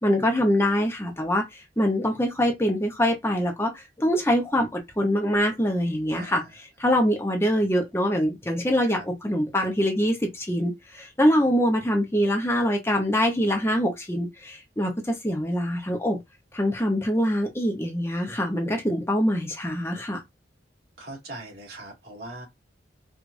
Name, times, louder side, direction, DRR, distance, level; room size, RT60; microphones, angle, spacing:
voice 1, 0.0-16.2 16.5-20.2, equal, 15° left, 0.8 m, -24 dB
voice 2, 21.0-22.4, right 2 dB, 60° right, 2.2 m, -40 dB
4.8 x 2.5 x 2.5 m
head